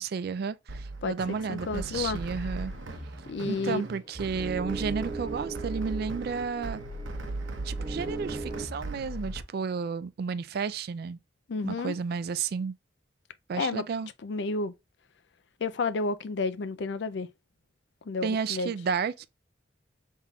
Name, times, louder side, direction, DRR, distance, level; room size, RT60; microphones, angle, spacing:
voice 1, 0.0-2.7 3.4-6.8 7.6-11.2 11.6-12.7 13.5-14.1 18.2-19.3, right 5 dB, 50° right, 0.3 m, -32 dB
sound 1, 0.7-9.4, right 2 dB, 75° right, 0.8 m, -38 dB
voice 2, 1.5-2.2 3.3-3.8 11.5-11.9 13.6-13.8 14.2-14.7 15.6-17.3 18.1-18.7, left 3 dB, 60° left, 0.4 m, -31 dB
sound 2, 3.2-8.6, right 3 dB, 35° right, 1.1 m, -39 dB
5.6 x 3.6 x 2.3 m
head